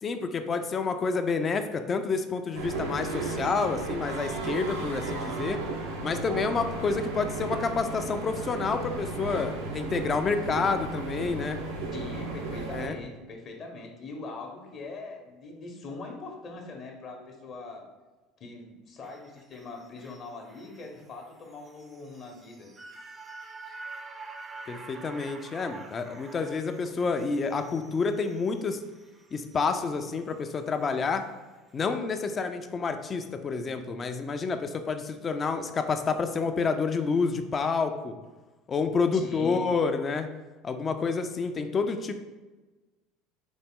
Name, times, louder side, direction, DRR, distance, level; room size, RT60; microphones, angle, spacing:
voice 1, 0.0-5.6 6.0-11.6 12.7-13.0 24.7-28.8 29.3-31.3 31.7-38.2 38.7-40.3 40.6-42.1, left 4 dB, 35° left, 7 dB, 0.3 m, -29 dB
sound 1, 2.5-12.9, right 3 dB, 90° right, 0.6 m, -34 dB
voice 2, 11.9-17.9 18.4-22.7 23.6-23.7 39.1-39.7, left 3 dB, 50° left, 2 dB, 0.8 m, -42 dB
sound 2, 19.0-31.4 31.7-31.8, right 3 dB, 30° right, 0.5 m, -48 dB
4.1 x 2.0 x 3.6 m, 1.2 s
hypercardioid pair, 90°, 0 cm